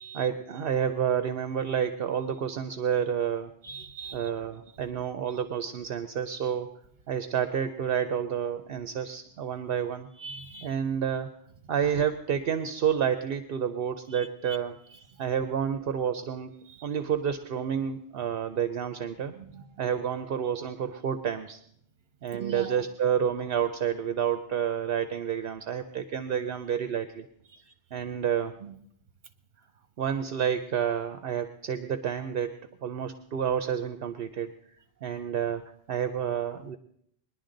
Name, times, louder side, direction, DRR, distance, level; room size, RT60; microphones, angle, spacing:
voice 1, 0.1-3.5 4.1-6.7 7.1-10.1 10.6-11.3 11.7-14.8 15.2-16.5 16.8-19.3 19.8-21.6 22.2-27.2 27.9-28.5 30.0-34.5 35.0-36.8, right 8 dB, 70° right, 9 dB, 0.9 m, -29 dB
voice 2, 3.6-4.3 5.3-5.4 10.2-10.7 14.1-14.6 16.7-16.8 19.3-19.7 22.3-22.8 27.5-27.6 28.6-28.8, right 5 dB, 50° right, 8 dB, 1.2 m, -41 dB
21.0 x 11.0 x 3.9 m, 0.69 s
omnidirectional pair, 1.0 m